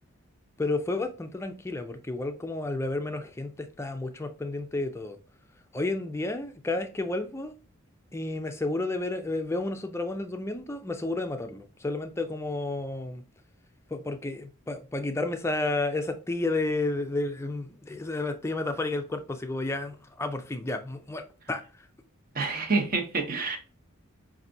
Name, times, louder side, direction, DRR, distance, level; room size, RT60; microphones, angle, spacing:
voice 1, 0.6-5.2 5.7-7.5 8.1-13.2 13.9-21.6 22.4-22.6, left 2 dB, 10° left, 0.3 m, -31 dB
voice 2, 22.3-23.6, right 4 dB, 40° right, 0.8 m, -27 dB
5.4 x 2.6 x 2.6 m
head